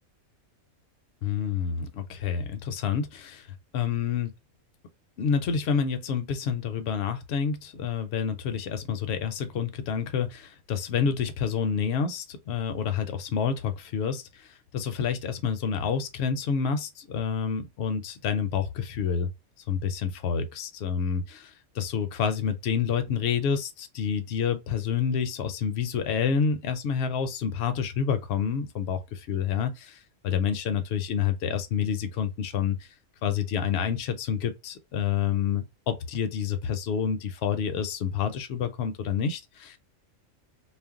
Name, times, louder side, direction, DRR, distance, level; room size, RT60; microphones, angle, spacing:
voice 1, 1.2-3.5 3.7-4.3 5.2-14.5 14.7-19.3 19.7-30.0 30.2-32.9 33.2-39.8, left 7 dB, 60° left, 0.7 m, -28 dB
2.5 x 2.1 x 3.5 m
omnidirectional pair, 1.4 m